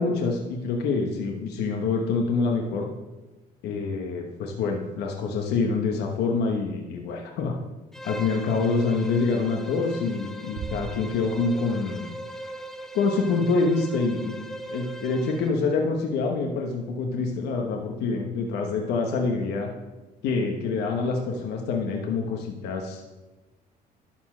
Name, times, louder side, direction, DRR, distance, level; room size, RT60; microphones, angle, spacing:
voice 1, 0.0-2.9 3.6-7.6 8.0-12.1 12.9-14.4 14.7-19.7 20.2-23.0, left 4 dB, 80° left, 1 dB, 1.1 m, -26 dB
Bowed string instrument, 7.9-15.6, right 1 dB, 5° left, 0.6 m, -39 dB
Bass drum, 10.6-12.0, right 7 dB, 50° right, 0.5 m, -39 dB
12.0 x 4.4 x 6.0 m, 1.1 s
cardioid pair, 110°, 17 cm